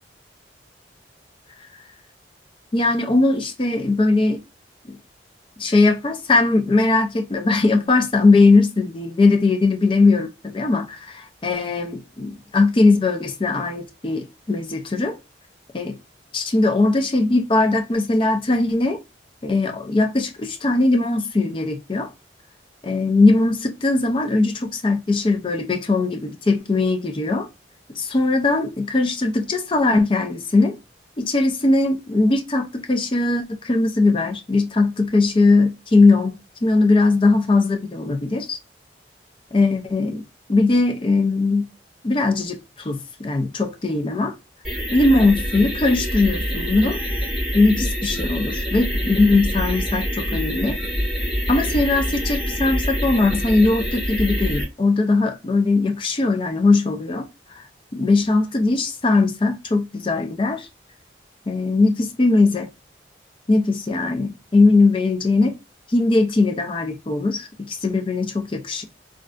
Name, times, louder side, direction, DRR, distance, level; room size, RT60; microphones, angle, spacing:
voice 1, 2.7-4.4 4.9-5.0 5.6-15.1 15.7-16.0 16.3-19.0 19.4-22.1 22.8-27.5 27.9-30.8 31.2-38.6 39.5-40.2 40.5-41.7 42.0-44.3 44.9-47.0 47.5-50.8 51.5-57.2 57.6-57.7 57.9-60.7 61.5-62.7 63.5-65.5 65.9-68.8, left 3 dB, 30° left, 0.4 m, -19 dB
sound 1, 44.6-54.6, equal, 5° right, 1.4 m, -26 dB
3.2 x 2.5 x 2.3 m
head